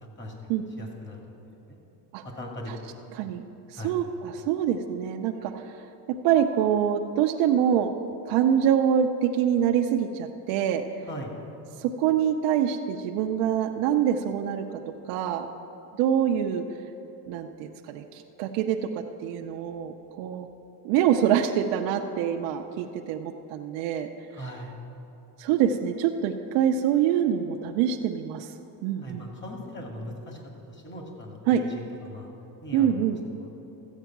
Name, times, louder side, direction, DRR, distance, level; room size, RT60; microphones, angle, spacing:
voice 1, 0.8-1.4 1.7-1.8 2.2-3.0 3.7-4.0 11.1-11.3 24.3-24.7 29.0-30.4 30.7-32.3 32.6-33.5, left 1 dB, 25° left, 1 dB, 2.2 m, -39 dB
voice 2, 3.1-3.4 3.7-5.8 6.1-7.9 8.3-10.8 11.8-14.8 15.1-15.5 16.0-16.8 17.3-20.5 20.8-24.1 25.4-28.5 28.8-29.3 31.5-31.6 32.7-33.2, right 9 dB, 85° right, 4 dB, 0.7 m, -25 dB
13.5 x 8.1 x 5.9 m, 3.0 s
cardioid pair, 115°, 43 cm